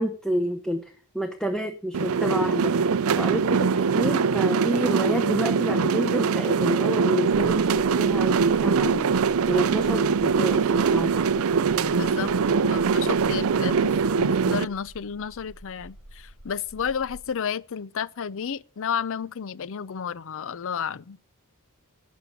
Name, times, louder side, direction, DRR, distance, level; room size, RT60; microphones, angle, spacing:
voice 1, 0.0-2.9 3.2-11.3, equal, 5° left, 0.9 m, -29 dB
sound 1, 1.9-14.6, right 5 dB, 65° right, 0.5 m, -22 dB
voice 2, 11.9-12.3 12.6-13.9 14.2-21.2, left 7 dB, 60° left, 0.5 m, -32 dB
sound 2, 14.4-17.3, equal, 90° left, 5.3 m, -48 dB
11.5 x 8.5 x 5.2 m
head